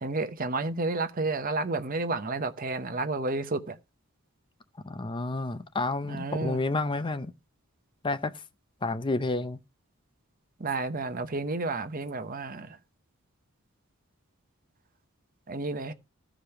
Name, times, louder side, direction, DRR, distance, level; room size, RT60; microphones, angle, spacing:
voice 1, 0.0-3.8 6.1-6.6 10.6-12.8 15.5-15.9, right 3 dB, 40° right, 0.9 m, -31 dB
voice 2, 4.8-7.3 8.0-8.3 8.8-9.6, left 2 dB, 25° left, 0.6 m, -30 dB
15.0 x 5.1 x 5.7 m
head